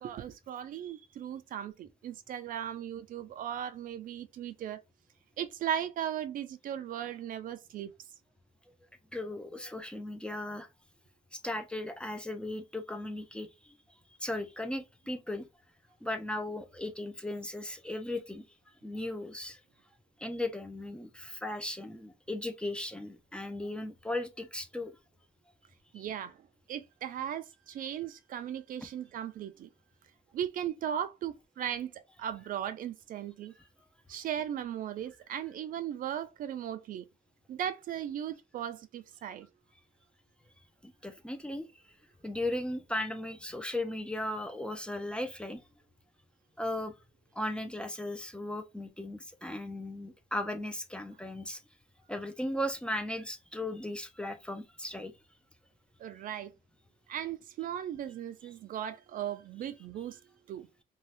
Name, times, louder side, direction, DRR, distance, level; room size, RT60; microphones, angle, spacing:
voice 1, 0.0-4.8 5.4-7.9 25.9-26.4 26.7-29.7 30.3-31.9 32.2-33.5 34.1-37.0 37.5-39.5 56.0-56.5 57.1-60.2 60.5-60.7, right 10 dB, 55° right, 0.4 m, -37 dB
voice 2, 9.1-10.7 11.3-13.8 14.2-15.5 16.0-18.4 18.8-19.6 20.2-24.9 40.8-41.7 42.2-45.6 46.6-46.9 47.3-51.6 52.1-55.1, left 1 dB, 5° left, 0.5 m, -37 dB
2.7 x 2.3 x 3.3 m
cardioid pair, 110°, 17 cm